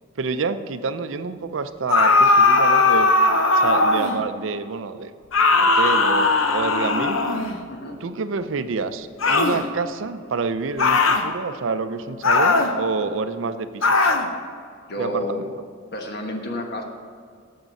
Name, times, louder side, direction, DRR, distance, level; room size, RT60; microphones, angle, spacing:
voice 1, 0.2-3.1 3.5-5.1 5.6-7.2 8.0-14.1 15.0-15.5, right 4 dB, 70° right, 11 dB, 0.5 m, -28 dB
sound 1, 1.9-4.2 5.3-7.6 9.2-9.6 10.8-11.3 12.2-12.7 13.8-14.3, left 3 dB, 85° left, 0.8 m, -18 dB
voice 2, 14.9-15.4 15.9-16.8, left 1 dB, 55° left, 2 dB, 1.3 m, -30 dB
8.9 x 6.7 x 5.4 m, 2.2 s
head